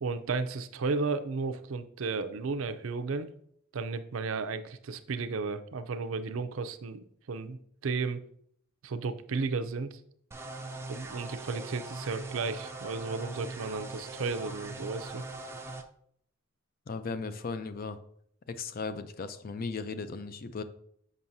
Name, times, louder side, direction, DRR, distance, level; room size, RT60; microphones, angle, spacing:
voice 1, 0.0-3.3 3.7-8.2 8.8-10.0 10.9-15.2, right 4 dB, 80° right, 10 dB, 0.5 m, -34 dB
sound 1, 10.3-15.8, right 2 dB, 10° right, 0.4 m, -41 dB
voice 2, 16.9-18.0 18.5-20.6, left 4 dB, 45° left, 11 dB, 0.5 m, -36 dB
7.2 x 5.5 x 2.7 m, 0.67 s
head